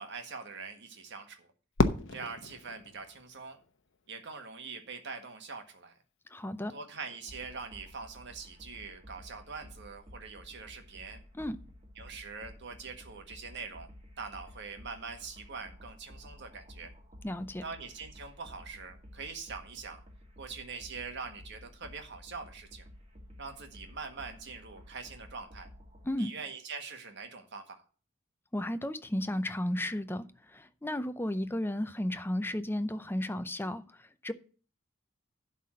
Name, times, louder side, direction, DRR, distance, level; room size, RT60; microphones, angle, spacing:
voice 1, 0.0-1.5 2.1-3.6 4.1-5.9 6.7-11.2 12.0-13.9 14.2-16.9 17.6-20.0 20.4-22.8 23.4-25.7 26.2-27.8, right 4 dB, 60° right, 1.7 m, -43 dB
Fireworks, 1.8-4.0, left 3 dB, 65° left, 0.9 m, -32 dB
voice 2, 6.3-6.7 11.3-11.6 17.2-17.6 26.0-26.3 28.5-34.3, left 1 dB, 10° left, 0.6 m, -34 dB
sound 1, 7.3-26.1, equal, 30° right, 2.2 m, -53 dB
11.5 x 4.2 x 7.6 m
head